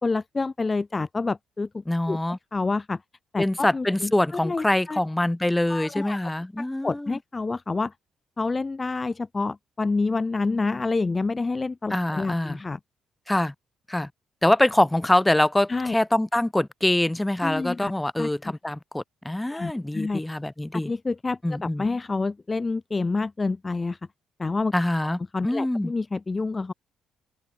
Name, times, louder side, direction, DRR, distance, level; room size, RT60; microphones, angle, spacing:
voice 1, 0.0-1.7 2.1-2.2 2.5-3.0 3.3-5.0 5.7-6.2 6.6-7.9 8.4-12.8 15.7-15.9 17.4-17.9 18.2-18.3 19.5-20.2 20.9-24.0 24.4-24.7 25.3-26.7, left 3 dB, 25° left, 1.5 m, -28 dB
voice 2, 1.9-2.4 3.4-7.2 11.9-12.6 13.3-13.5 13.9-14.1 14.4-20.9 21.4-21.8 24.7-25.9, left 1 dB, 10° left, 3.0 m, -24 dB
cardioid pair, 90°, 0 cm